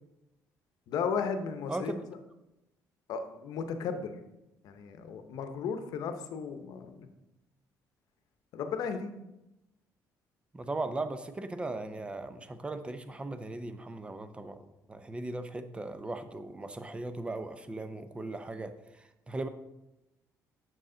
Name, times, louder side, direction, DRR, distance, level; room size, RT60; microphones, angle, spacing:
voice 1, 0.9-2.0 3.1-4.1 4.6-7.1 8.5-9.1, left 6 dB, 75° left, 8 dB, 0.8 m, -35 dB
voice 2, 1.7-2.0 10.5-14.6 14.9-19.5, right 2 dB, 15° right, 10 dB, 0.6 m, -38 dB
6.6 x 6.2 x 3.8 m, 0.94 s
cardioid pair, 115°, 7 cm